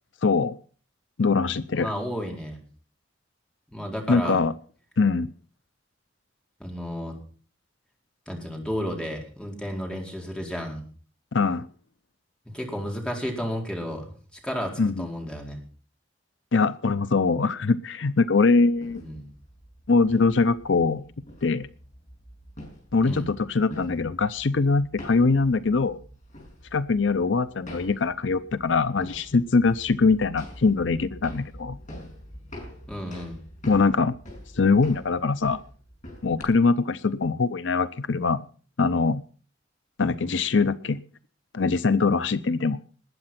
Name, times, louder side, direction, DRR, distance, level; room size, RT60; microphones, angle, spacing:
voice 1, 0.2-0.5 1.2-1.9 4.1-4.5 5.0-5.3 11.3-11.7 14.8-15.1 16.5-19.0 19.9-21.0 21.4-21.7 22.9-26.0 26.7-31.8 33.7-34.1 34.6-35.6 36.2-38.4 38.8-39.2 40.0-41.0 41.5-42.8, left 4 dB, 75° left, 14 dB, 0.7 m, -22 dB
voice 2, 1.7-2.6 3.7-4.4 6.6-7.2 8.3-10.9 12.5-14.1 14.4-15.6 19.0-19.3 23.0-23.3 32.9-33.4, equal, 5° left, 0 dB, 4.4 m, -32 dB
sound 1, 18.7-36.4, equal, 40° left, 6.5 m, -45 dB
20.0 x 8.9 x 5.9 m, 0.42 s
head